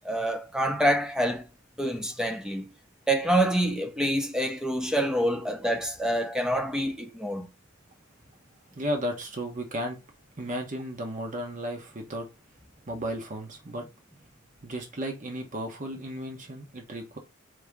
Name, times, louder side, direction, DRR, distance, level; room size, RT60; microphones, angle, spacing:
voice 1, 0.0-1.4 1.8-2.7 3.1-7.5, right 1 dB, 5° right, 0.6 m, -26 dB
voice 2, 8.8-10.0 10.4-12.3 12.9-13.9 14.6-17.2, equal, 40° right, 0.9 m, -34 dB
4.8 x 2.8 x 3.5 m
head